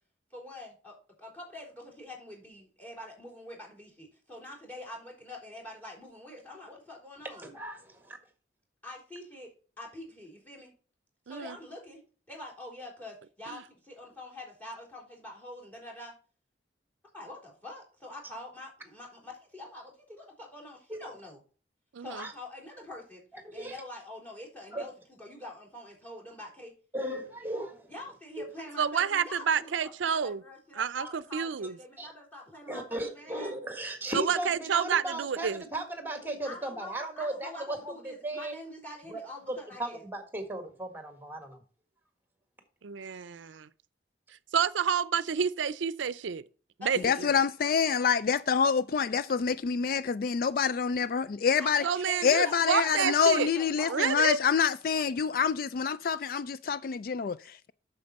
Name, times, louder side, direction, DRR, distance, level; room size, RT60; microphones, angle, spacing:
voice 1, 0.3-7.5 8.8-10.7 11.3-12.0 12.3-16.1 17.1-21.4 22.0-23.2 23.5-26.7 27.9-33.6 36.4-40.0 46.8-47.4 51.6-54.0, left 1 dB, 10° left, 3.8 m, -45 dB
voice 2, 7.4-8.2 20.9-21.0 22.2-22.3 23.5-23.7 24.7-24.8 26.9-27.9 28.4-28.5 32.0-32.1 32.7-38.5 39.1-39.2 39.5-41.6, right 1 dB, 10° right, 1.6 m, -36 dB
voice 3, 21.9-22.3 28.8-30.4 30.8-31.7 34.1-35.6 42.8-43.4 44.5-46.4 46.8-47.3 51.8-53.5 53.9-54.4, right 7 dB, 90° right, 0.5 m, -29 dB
voice 4, 47.0-51.8 52.2-57.7, left 6 dB, 50° left, 0.3 m, -27 dB
8.7 x 6.9 x 4.1 m
head